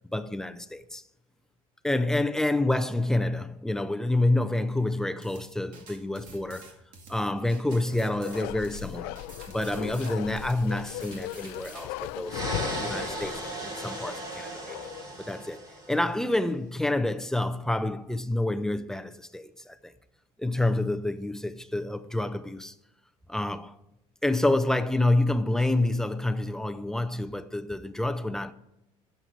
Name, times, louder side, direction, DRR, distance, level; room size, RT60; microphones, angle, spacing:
voice 1, 0.1-1.0 1.8-6.7 7.1-9.2 9.5-14.8 15.2-15.6 15.9-19.9 20.4-22.7 23.3-23.8 24.2-28.5, left 2 dB, 5° left, 0.5 m, -28 dB
sound 1, 5.2-11.9, right 4 dB, 60° right, 2.3 m, -49 dB
Bark, 7.6-15.2 15.5-15.6, left 16 dB, 90° left, 0.5 m, -39 dB
sound 2, 12.2-16.2, right 1 dB, 25° right, 2.8 m, -36 dB
11.0 x 7.8 x 4.5 m
cardioid pair, 135°, 16 cm